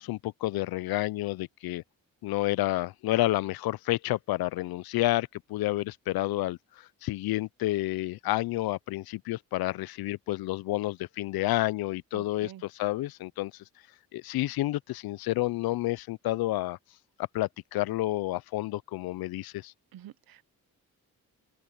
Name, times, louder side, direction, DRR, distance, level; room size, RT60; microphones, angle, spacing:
voice 1, 0.0-1.8 2.2-13.5 14.1-16.8 17.3-19.7, left 17 dB, 90° left, 0.5 m, -30 dB
voice 2, 12.1-12.6 19.9-20.5, right 12 dB, 75° right, 0.8 m, -48 dB
open air
cardioid pair, 80°, 35 cm